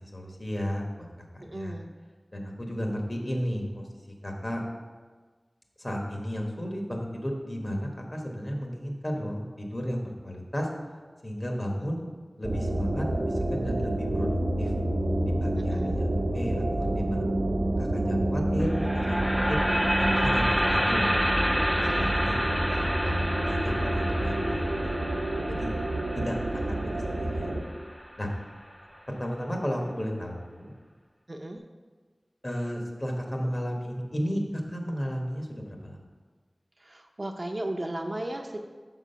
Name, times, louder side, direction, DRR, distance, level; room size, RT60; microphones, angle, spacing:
voice 1, 0.0-1.1 1.3-1.8 2.3-4.6 5.8-10.7 11.2-12.0 12.4-14.7 15.2-17.2 17.8-19.6 20.0-21.1 21.7-24.9 25.5-25.7 26.1-26.3 26.7-27.5 28.2-28.3 29.2-30.7 32.4-36.0, equal, 40° left, 1 dB, 1.3 m, -34 dB
voice 2, 1.4-1.9 15.6-16.0 21.9-22.1 31.3-31.6 36.8-38.6, right 1 dB, 45° right, 3 dB, 0.6 m, -35 dB
sound 1, 12.4-27.6, right 1 dB, 90° right, 0.8 m, -28 dB
sound 2, 18.6-28.7, equal, 5° left, 0.4 m, -29 dB
6.1 x 4.7 x 5.6 m, 1.4 s
wide cardioid pair, 55°, 0 cm